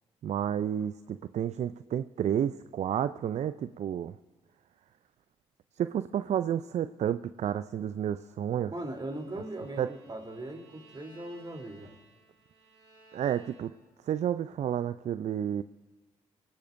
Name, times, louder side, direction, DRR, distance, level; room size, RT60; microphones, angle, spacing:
voice 1, 0.2-4.2 5.8-8.7 9.8-9.9 13.1-13.8 14.1-15.6, right 9 dB, 55° right, 14 dB, 0.5 m, -31 dB
voice 2, 8.7-12.0, right 1 dB, 30° right, 3 dB, 3.4 m, -39 dB
Bowed string instrument, 8.8-14.0, right 3 dB, 90° right, 2.6 m, -59 dB
25.5 x 17.5 x 2.7 m, 1.3 s
hypercardioid pair, 40°, 14 cm